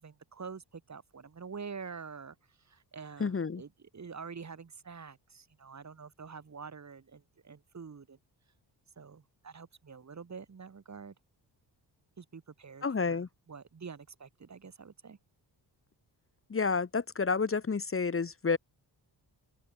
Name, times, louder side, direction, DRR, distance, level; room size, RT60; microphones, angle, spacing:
voice 1, 0.0-8.2 9.0-11.1 12.2-15.2, right 5 dB, 40° right, 6.1 m, -47 dB
voice 2, 3.2-3.6 12.8-13.3 16.5-18.6, left 5 dB, 30° left, 1.8 m, -30 dB
open air
wide cardioid pair, 125°, 44 cm